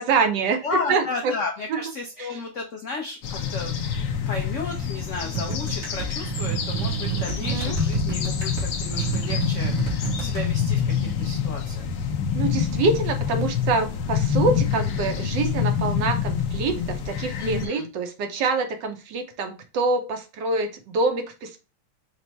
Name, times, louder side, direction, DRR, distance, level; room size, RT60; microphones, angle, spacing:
voice 1, 0.0-1.4 1.7-1.8 2.2-2.4 7.4-7.8 12.3-21.6, right 4 dB, 70° right, 6 dB, 1.3 m, -26 dB
voice 2, 0.6-3.7 4.3-11.9 17.4-17.9, left 4 dB, 85° left, 1 dB, 0.6 m, -33 dB
sound 1, 3.2-17.7, left 7 dB, 65° left, 1.1 m, -27 dB
sound 2, 5.3-10.5, right 6 dB, 55° right, 1.5 m, -29 dB
4.4 x 2.0 x 4.0 m, 0.30 s
omnidirectional pair, 2.2 m